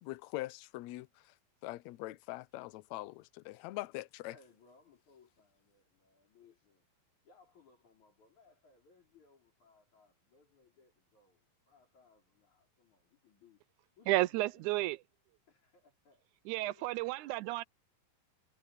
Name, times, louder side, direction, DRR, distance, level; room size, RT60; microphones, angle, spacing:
voice 1, 0.0-1.3 1.6-4.4, left 18 dB, 80° left, 1.6 m, -43 dB
voice 2, 4.3-6.9 7.2-13.7 14.0-14.9 15.5-16.3 16.6-17.1, left 4 dB, 55° left, 5.9 m, -65 dB
voice 3, 14.1-15.0 16.5-17.6, right 18 dB, 85° right, 1.7 m, -32 dB
omnidirectional pair, 4.0 m